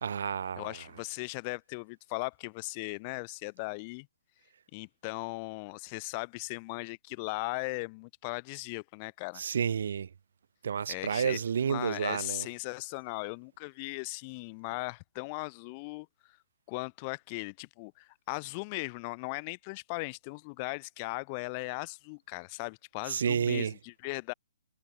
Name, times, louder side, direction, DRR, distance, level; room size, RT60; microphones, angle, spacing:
voice 1, 0.0-0.7 9.4-10.1 10.6-12.5 23.1-23.7, right 7 dB, 60° right, 0.8 m, -30 dB
voice 2, 0.6-4.1 4.7-9.4 10.9-16.1 16.7-24.3, left 29 dB, 25° left, 0.4 m, -38 dB
hypercardioid pair, 165°, 0 cm